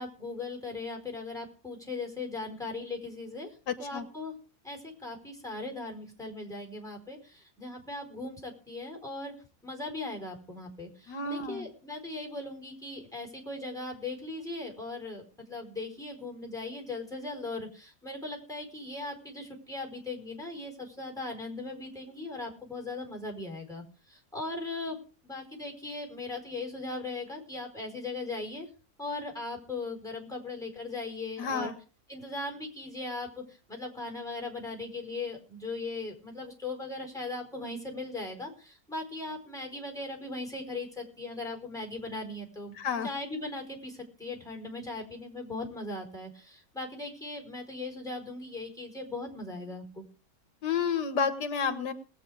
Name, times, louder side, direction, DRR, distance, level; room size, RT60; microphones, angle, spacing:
voice 1, 0.0-4.3 4.6-9.3 9.6-25.0 25.2-28.7 29.0-31.7 32.1-42.7 43.0-50.0, left 2 dB, ahead, 2 dB, 4.7 m, -39 dB
voice 2, 3.7-4.1 11.1-11.7 31.4-31.7 42.8-43.1 50.6-51.9, left 6 dB, 85° left, 9 dB, 1.9 m, -30 dB
20.0 x 8.7 x 4.9 m, 0.37 s
omnidirectional pair, 1.8 m